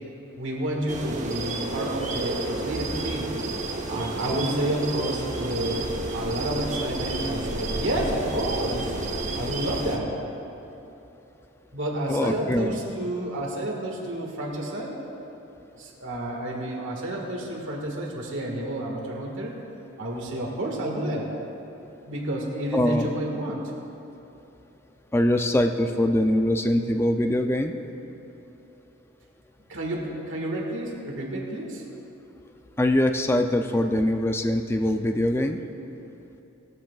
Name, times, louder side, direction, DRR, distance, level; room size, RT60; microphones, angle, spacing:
voice 1, 0.4-3.3 3.9-8.9 9.4-10.2 11.7-15.0 15.8-19.5 20.0-21.3 22.1-23.7 29.7-31.8, right 1 dB, 65° right, -1 dB, 1.7 m, -30 dB
sound 1, 0.9-10.0, right 2 dB, 35° right, 1.1 m, -31 dB
voice 2, 12.1-12.8 22.7-23.1 25.1-27.8 32.8-35.6, left 1 dB, 10° left, 5 dB, 0.4 m, -23 dB
19.0 x 13.0 x 2.4 m, 2.9 s
head